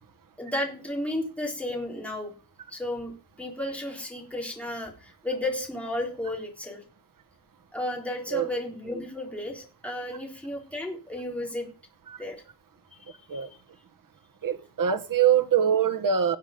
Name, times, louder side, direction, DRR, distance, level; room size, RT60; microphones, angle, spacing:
voice 1, 0.4-2.3 2.7-3.1 3.4-6.8 7.7-11.7 12.2-12.4 13.3-13.4, left 1 dB, 5° left, 3.9 m, -33 dB
voice 2, 14.4-16.4, right 8 dB, 55° right, 1.5 m, -23 dB
18.5 x 9.0 x 5.2 m
wide cardioid pair, 170°, 40 cm